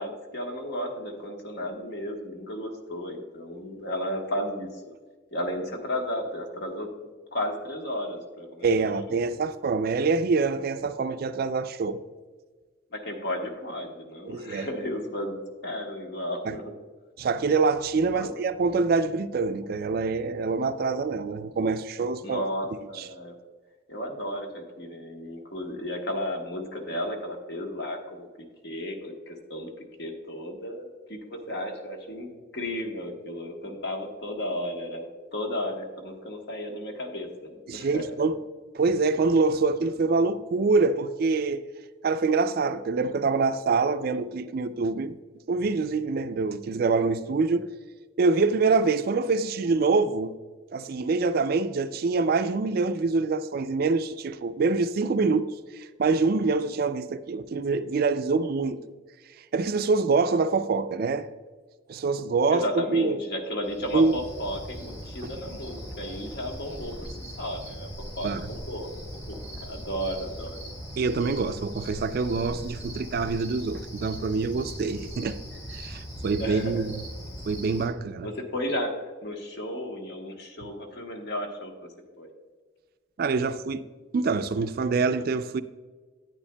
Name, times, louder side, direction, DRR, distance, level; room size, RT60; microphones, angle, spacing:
voice 1, 0.0-4.7 5.3-6.9 7.3-9.2 12.9-16.7 18.1-18.3 22.2-23.4 23.9-28.3 28.6-32.3 32.5-38.0 62.5-66.9 67.3-67.9 68.2-68.9 69.3-70.6 76.4-76.8 78.2-78.9 79.2-82.3, equal, 60° left, 1.2 m, -34 dB
voice 2, 8.6-12.0 14.3-14.7 16.5-16.6 17.2-22.4 37.7-38.4 38.7-41.6 42.0-45.1 45.5-47.6 48.2-50.3 50.7-55.5 55.8-58.8 59.5-61.3 61.9-63.2 63.9-64.1 68.2-68.5 71.0-75.4 75.7-76.9 77.5-78.3 83.2-83.8 84.1-85.6, right 4 dB, 50° right, 0.3 m, -25 dB
Cricket, 63.6-77.9, equal, 25° left, 2.3 m, -40 dB
9.7 x 9.1 x 2.2 m
head